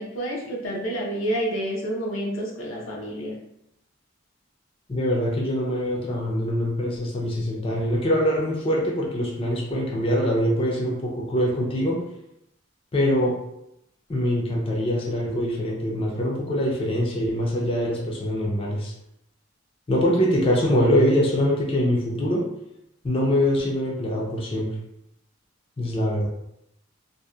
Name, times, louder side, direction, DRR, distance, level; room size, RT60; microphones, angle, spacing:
voice 1, 0.0-3.3, right 1 dB, 85° left, -2 dB, 0.6 m, -29 dB
voice 2, 4.9-12.0 12.9-13.4 14.1-18.9 19.9-22.4 23.0-24.7 25.8-26.3, equal, 30° left, -3 dB, 0.4 m, -23 dB
2.6 x 2.1 x 2.2 m, 0.82 s
head